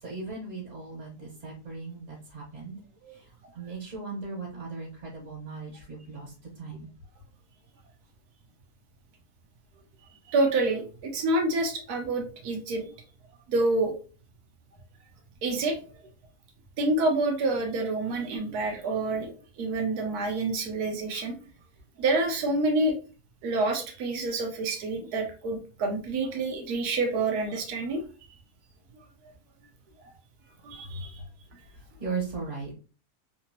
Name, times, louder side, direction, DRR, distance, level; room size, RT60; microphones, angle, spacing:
voice 1, 0.0-6.9 30.9-31.3 31.7-32.7, right 4 dB, 50° right, -4 dB, 1.7 m, -38 dB
voice 2, 10.3-12.9 13.5-13.9 15.4-15.8 16.8-21.3 22.0-23.0 23.4-28.0 30.6-31.1, right 2 dB, 75° right, 3 dB, 1.4 m, -27 dB
3.5 x 2.8 x 2.9 m, 0.36 s
omnidirectional pair, 1.7 m